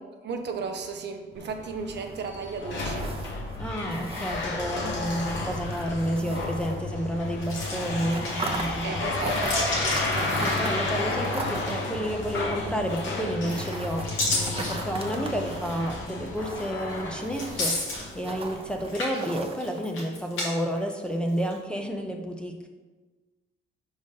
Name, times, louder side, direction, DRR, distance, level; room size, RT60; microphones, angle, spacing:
voice 1, 0.2-3.1 8.8-10.0, right 5 dB, 60° right, 5 dB, 0.7 m, -35 dB
sound 1, 1.3-18.9, left 2 dB, 70° left, 1.4 m, -32 dB
sound 2, 1.3-7.3 7.6-19.9, right 3 dB, 30° right, 0.8 m, -40 dB
voice 2, 3.6-9.1 10.4-22.7, equal, 5° left, 3 dB, 0.7 m, -31 dB
sound 3, 7.4-8.6 9.1-11.1 11.4-12.1 12.9-13.4 13.8-15.4 16.0-16.1 17.3-18.6 18.8-20.5 20.8-21.5, left 2 dB, 85° left, 1.7 m, -32 dB
5.1 x 4.0 x 5.3 m, 1.3 s
cardioid pair, 90°, 20 cm